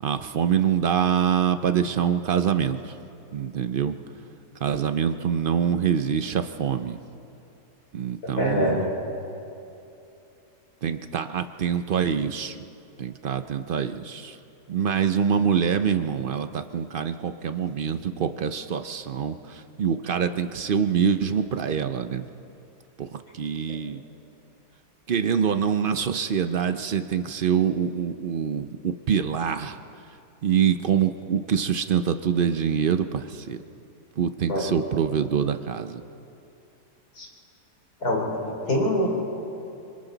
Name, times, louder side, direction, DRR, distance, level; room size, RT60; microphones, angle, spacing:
voice 1, 0.0-3.0 3.3-3.9 4.6-7.0 7.9-8.8 10.8-12.6 13.0-14.4 14.7-22.2 23.0-24.0 25.1-29.8 30.4-33.6 34.2-36.0, right 7 dB, 65° right, 9 dB, 0.5 m, -25 dB
voice 2, 8.2-8.9 34.5-34.8 37.2-37.3 38.0-39.1, left 1 dB, 65° left, -1 dB, 4.4 m, -25 dB
26.0 x 25.0 x 4.0 m, 2.7 s
omnidirectional pair, 1.7 m